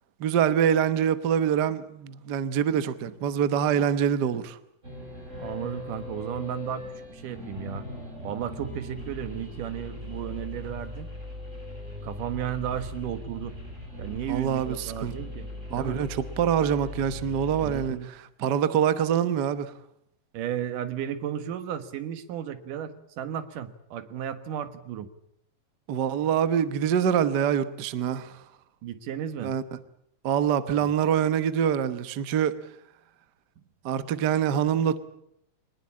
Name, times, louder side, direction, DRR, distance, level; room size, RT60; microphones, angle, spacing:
voice 1, 0.2-4.6 14.3-15.1 15.7-18.0 18.4-19.7 25.9-28.3 29.4-29.8 30.2-32.5 33.8-35.0, right 8 dB, 65° right, 1.0 m, -25 dB
sound 1, 4.8-17.9, left 1 dB, 20° right, 5.7 m, -39 dB
voice 2, 5.4-7.9 8.2-11.1 12.0-13.6 14.0-15.5 15.7-16.0 17.6-18.1 20.3-25.1 28.8-29.6, right 10 dB, 90° right, 3.0 m, -34 dB
23.0 x 20.0 x 8.7 m
omnidirectional pair, 3.6 m